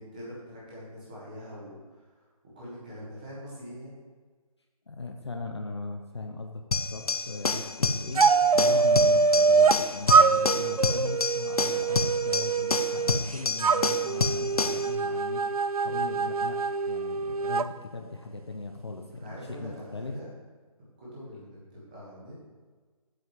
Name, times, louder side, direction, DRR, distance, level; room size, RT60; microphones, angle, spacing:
voice 1, 0.0-2.2 2.5-4.0 19.1-20.3 21.0-22.5, equal, 15° right, -8 dB, 1.6 m, -43 dB
voice 2, 4.9-8.2 8.5-15.4 15.8-16.6 16.9-20.2, left 3 dB, 45° left, 3 dB, 0.7 m, -39 dB
sound 1, 6.7-14.9, left 4 dB, 75° left, 0.8 m, -29 dB
sound 2, 8.1-9.8 10.1-13.2 13.6-17.7, right 5 dB, 75° right, 0.4 m, -24 dB
7.9 x 6.0 x 5.2 m, 1.4 s
figure-of-eight pair, 175°, 19 cm